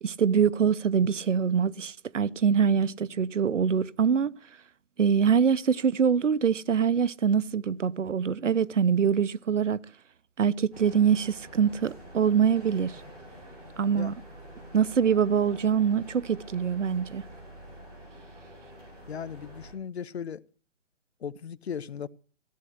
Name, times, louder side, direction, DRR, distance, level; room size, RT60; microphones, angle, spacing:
voice 1, 0.0-4.3 5.0-9.8 10.4-13.0 13.8-14.1 14.7-17.2, right 7 dB, 90° right, 0.9 m, -24 dB
sound 1, 10.7-19.7, right 1 dB, 15° right, 6.5 m, -47 dB
voice 2, 19.1-20.4 21.2-22.1, left 7 dB, 60° left, 0.9 m, -37 dB
15.0 x 8.7 x 8.0 m
hypercardioid pair, 165°, 36 cm